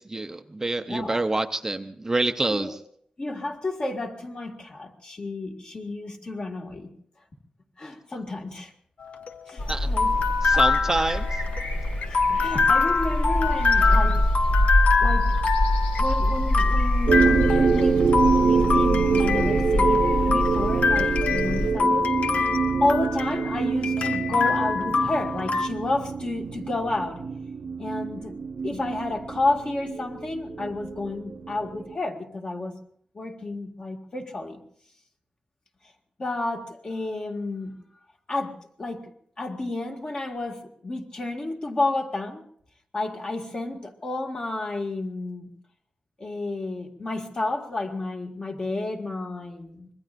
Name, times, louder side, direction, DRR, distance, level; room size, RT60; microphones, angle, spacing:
voice 1, 0.0-2.8 9.7-9.9 10.4-11.4, right 2 dB, 20° right, 7 dB, 0.6 m, -27 dB
voice 2, 0.9-1.2 2.5-2.7 3.2-6.9 7.8-8.7 9.5-10.1 12.1-14.2 15.0-15.3 16.0-22.1 22.4-22.5 22.8-27.2 27.8-28.4 28.6-32.7 33.1-34.6 36.2-37.7 38.3-39.1 39.4-42.4 42.9-45.5 46.2-49.9, left 2 dB, 40° left, 2 dB, 2.0 m, -31 dB
sound 1, 9.0-25.7, left 4 dB, 65° left, 1.0 m, -25 dB
sound 2, 9.6-21.7, left 1 dB, 80° left, 4.7 m, -25 dB
sound 3, 17.1-32.0, right 5 dB, 60° right, 0.8 m, -26 dB
25.5 x 21.5 x 2.6 m, 0.64 s
wide cardioid pair, 140°, 2 cm